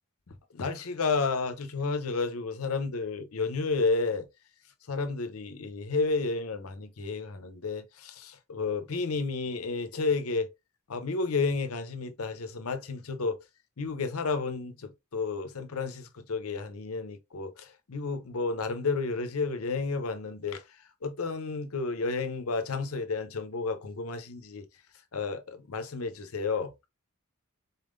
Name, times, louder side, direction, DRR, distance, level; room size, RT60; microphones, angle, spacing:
voice 1, 0.3-4.3 4.9-10.5 10.9-13.4 13.8-20.6 21.0-24.7 25.1-26.7, left 4 dB, 85° left, 0.7 m, -31 dB
4.0 x 3.7 x 2.5 m
head